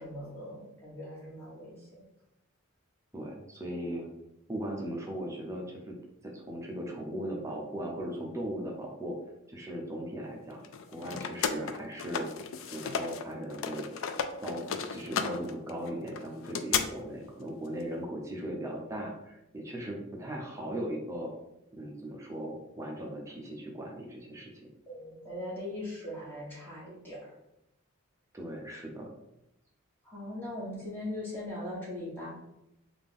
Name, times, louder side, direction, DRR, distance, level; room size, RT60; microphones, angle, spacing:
voice 1, 0.0-1.9 24.9-27.3 30.0-32.4, left 1 dB, 10° left, -8 dB, 1.4 m, -40 dB
voice 2, 3.1-4.1 4.5-6.0 6.2-9.2 9.5-10.6 10.9-12.3 12.7-13.9 14.4-21.3 21.7-24.5 28.3-29.1, right 1 dB, 15° right, -1 dB, 0.5 m, -38 dB
sound 1, 10.6-13.2 13.5-16.8, left 7 dB, 65° left, 0.3 m, -34 dB
3.6 x 2.5 x 3.5 m, 0.86 s
head